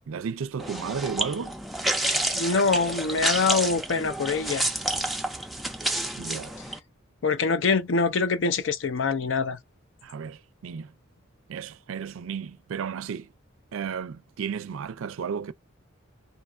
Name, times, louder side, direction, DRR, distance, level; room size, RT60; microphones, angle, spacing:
voice 1, 0.1-1.6 6.2-6.6 10.0-10.9 11.5-13.3 13.7-15.5, right 6 dB, 80° right, 0.4 m, -33 dB
sound 1, 0.6-6.8, right 1 dB, ahead, 0.4 m, -29 dB
voice 2, 2.3-4.7 7.2-9.6, left 4 dB, 65° left, 0.5 m, -24 dB
2.8 x 2.4 x 4.2 m
head